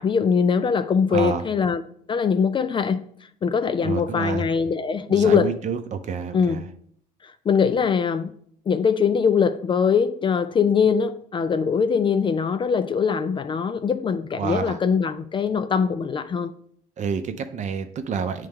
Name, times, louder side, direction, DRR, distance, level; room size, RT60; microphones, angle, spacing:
voice 1, 0.0-1.8 2.1-3.0 3.4-5.5 6.3-6.6 7.2-8.3 8.7-16.5, left 6 dB, 30° left, 0.3 m, -22 dB
voice 2, 1.1-1.4 3.8-4.5 5.1-6.7 14.4-14.8 17.0-18.5, right 6 dB, 45° right, 0.6 m, -28 dB
9.4 x 3.3 x 3.5 m
cardioid pair, 110°, 17 cm